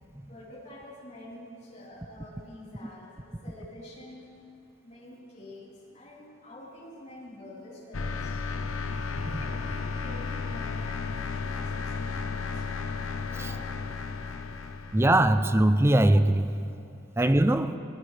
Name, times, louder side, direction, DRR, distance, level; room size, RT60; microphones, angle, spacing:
voice 1, 0.2-4.3 4.8-8.7 9.0-12.9 13.2-14.0 14.5-14.6 15.7-15.9, left 1 dB, 35° left, 4.2 m, -47 dB
sound 1, 7.9-15.1, left 4 dB, 85° left, 0.8 m, -33 dB
voice 2, 14.9-16.6 17.2-17.8, right 1 dB, 10° right, 0.5 m, -21 dB
23.5 x 15.5 x 3.4 m
head